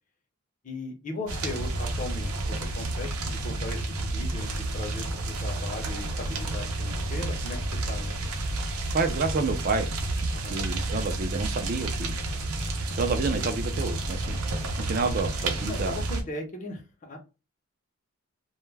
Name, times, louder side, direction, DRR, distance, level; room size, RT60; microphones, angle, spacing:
voice 1, 0.6-7.6 7.9-8.2 10.3-10.6 15.6-17.2, left 2 dB, 35° left, 4 dB, 0.6 m, -37 dB
sound 1, 1.3-16.2, right 2 dB, 85° right, 0.6 m, -30 dB
voice 2, 8.9-9.9 10.4-12.1 12.9-14.4 14.9-16.0, right 4 dB, 40° right, 6 dB, 0.4 m, -29 dB
2.2 x 2.1 x 3.2 m, 0.29 s
head